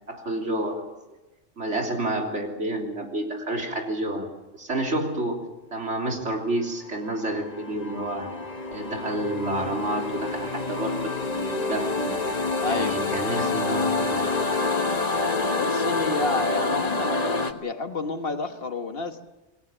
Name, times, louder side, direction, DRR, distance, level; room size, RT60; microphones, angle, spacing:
voice 1, 0.1-0.8 1.6-5.4 5.7-8.3 8.7-12.2 12.6-14.5, right 1 dB, 85° right, 1 dB, 3.7 m, -29 dB
sound 1, 6.8-17.5, left 3 dB, 35° left, 1.4 m, -27 dB
voice 2, 12.6-13.0 15.4-19.3, left 3 dB, 55° left, 7 dB, 1.6 m, -30 dB
27.5 x 19.0 x 7.2 m, 1.1 s
omnidirectional pair, 1.2 m